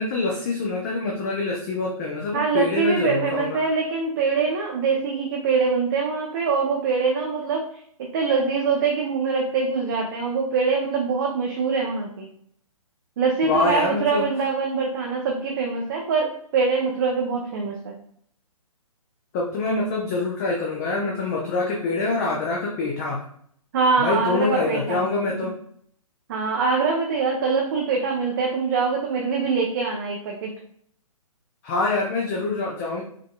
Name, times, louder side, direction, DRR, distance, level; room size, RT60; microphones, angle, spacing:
voice 1, 0.0-3.6 13.4-14.3 19.3-23.2 24.0-25.6 31.6-33.0, left 3 dB, 25° left, -2 dB, 0.5 m, -25 dB
voice 2, 2.3-12.3 13.2-17.9 23.7-25.0 26.3-30.5, right 5 dB, 35° right, -1 dB, 0.6 m, -24 dB
5.0 x 2.7 x 2.2 m, 0.65 s
figure-of-eight pair, 130°, 19 cm